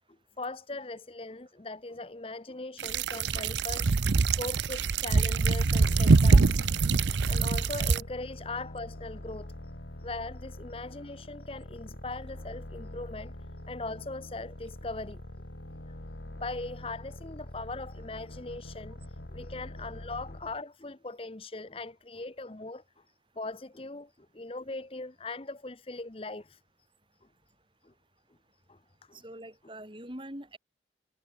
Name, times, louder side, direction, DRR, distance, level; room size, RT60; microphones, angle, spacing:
voice 1, 0.4-6.6 7.3-9.5 10.0-15.2 15.9-16.0 16.4-22.8 23.4-26.6 27.8-27.9 28.7-29.2, left 2 dB, 30° left, 0.9 m, -40 dB
sound 1, 2.8-8.0, right 4 dB, 85° right, 0.7 m, -24 dB
sound 2, 5.9-20.6, left 1 dB, 80° left, 2.2 m, -44 dB
voice 2, 29.1-30.6, right 1 dB, 30° right, 5.1 m, -43 dB
head